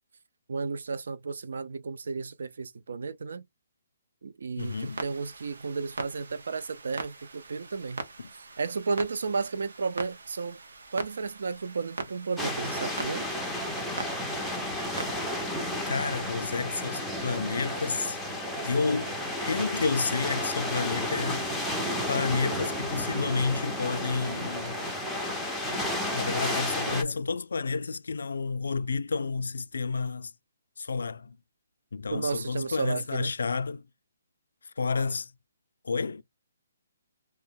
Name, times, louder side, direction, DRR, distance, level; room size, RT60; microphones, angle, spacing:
voice 1, 0.5-3.4 4.2-8.0 8.4-10.6 10.9-13.3 32.1-33.3, right 4 dB, 65° right, 0.4 m, -33 dB
voice 2, 4.6-5.0 15.9-18.2 18.6-19.2 19.4-21.5 22.1-24.8 26.0-30.3 30.8-31.4 31.9-33.9 34.8-35.3 35.8-36.2, left 4 dB, 85° left, 0.3 m, -30 dB
Clock, 4.6-15.1, right 3 dB, 85° right, 0.8 m, -42 dB
sound 1, 12.4-27.0, left 1 dB, ahead, 0.4 m, -32 dB
sound 2, 17.6-27.1, right 4 dB, 35° right, 0.7 m, -47 dB
2.8 x 2.1 x 3.4 m
hypercardioid pair, 175°, 0 cm